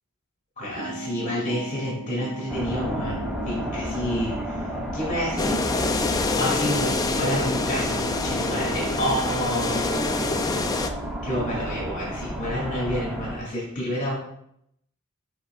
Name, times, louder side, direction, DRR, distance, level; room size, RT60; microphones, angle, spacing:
voice 1, 0.6-5.9 6.4-10.5 11.2-14.2, equal, 40° left, -5 dB, 2.6 m, -29 dB
sound 1, 0.8-12.0, right 2 dB, 25° right, 1.4 m, -37 dB
sound 2, 2.5-13.4, equal, 5° right, 0.8 m, -32 dB
sound 3, 5.4-10.9, left 3 dB, 15° left, 0.3 m, -26 dB
8.0 x 5.9 x 2.4 m, 0.73 s
head